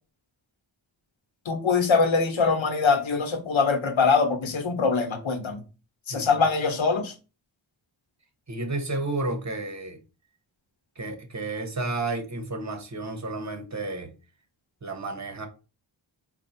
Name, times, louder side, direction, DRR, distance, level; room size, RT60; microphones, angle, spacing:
voice 1, 1.4-5.6 6.1-7.1, left 4 dB, 75° left, 1.0 m, -23 dB
voice 2, 8.5-10.0 11.0-14.1 14.8-15.5, right 2 dB, 35° right, 1.2 m, -31 dB
4.4 x 2.3 x 4.2 m
wide cardioid pair, 55°, 47 cm